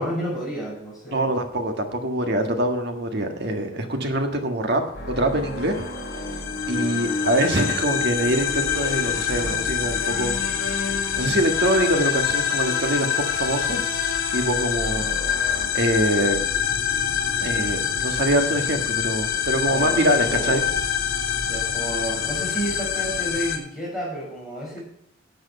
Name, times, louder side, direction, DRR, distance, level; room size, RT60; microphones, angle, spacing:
voice 1, 0.0-1.3 19.7-20.6 21.4-24.8, right 1 dB, ahead, -5 dB, 6.1 m, -31 dB
voice 2, 1.1-4.8 5.1-5.9 6.7-10.4 10.6-10.8 11.2-13.8 14.3-15.1 15.7-16.4 17.4-20.6, right 1 dB, 50° right, 5 dB, 1.6 m, -24 dB
sound 1, 4.9-15.7, left 2 dB, 45° left, 3.1 m, -35 dB
sound 2, 5.5-23.6, left 8 dB, 85° left, 2.4 m, -25 dB
10.5 x 7.9 x 6.8 m, 0.77 s
head